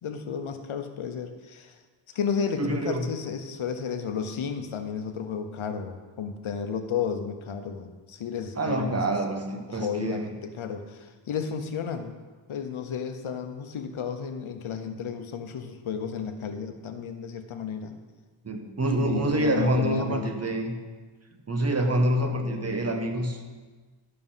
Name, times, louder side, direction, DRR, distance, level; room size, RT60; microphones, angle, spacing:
voice 1, 0.0-1.8 2.1-9.0 9.7-12.2 12.5-17.9 19.1-20.3, left 6 dB, 80° left, 8 dB, 1.0 m, -32 dB
voice 2, 2.6-3.1 8.6-10.3 18.4-20.7 21.5-23.5, right 1 dB, 30° right, 4 dB, 1.0 m, -26 dB
11.0 x 6.6 x 5.6 m, 1.4 s
wide cardioid pair, 175°, 48 cm